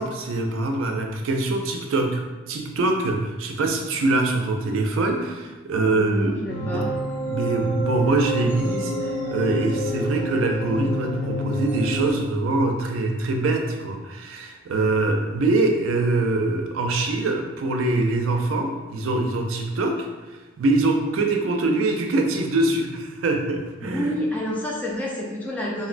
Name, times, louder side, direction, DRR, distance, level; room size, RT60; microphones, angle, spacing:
voice 1, 0.0-2.2 2.5-6.8 7.3-24.1, right 2 dB, 90° right, 3 dB, 0.4 m, -24 dB
voice 2, 5.7-6.9 23.8-25.9, left 1 dB, 10° left, -3 dB, 0.3 m, -29 dB
sound 1, 6.5-12.1, equal, 85° left, 1.3 m, -28 dB
3.6 x 2.1 x 2.5 m, 1.2 s
head